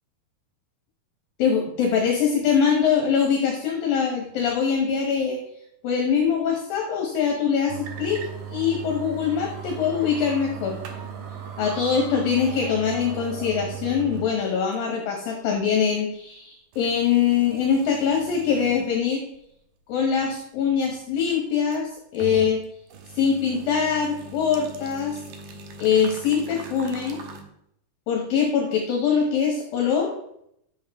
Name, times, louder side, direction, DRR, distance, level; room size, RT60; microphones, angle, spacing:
voice 1, 1.4-5.4 5.8-10.8 11.6-19.2 19.9-22.6 23.1-25.2 25.8-27.2 28.1-30.1, left 7 dB, 70° left, 1 dB, 2.8 m, -23 dB
sound 1, 7.7-14.4 14.7-14.8 15.5-15.6 16.7-18.9 19.3-19.4 21.5-22.6 22.9-27.4, right 7 dB, 70° right, 2.5 m, -38 dB
11.0 x 7.3 x 3.6 m, 0.74 s
omnidirectional pair, 4.6 m